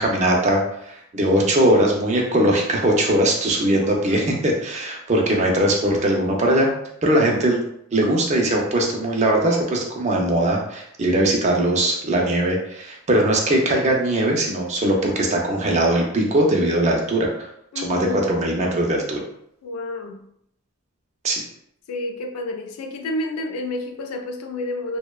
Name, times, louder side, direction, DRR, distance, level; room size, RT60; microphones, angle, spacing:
voice 1, 0.0-6.7 7.0-7.6 7.9-17.5 17.8-19.2 21.2-21.4, right 1 dB, 35° right, 0.4 m, -20 dB
voice 2, 3.6-4.3 7.2-7.6 17.7-18.2 19.6-20.3 21.9-25.0, left 2 dB, 85° left, 0.3 m, -30 dB
2.6 x 2.1 x 2.2 m
head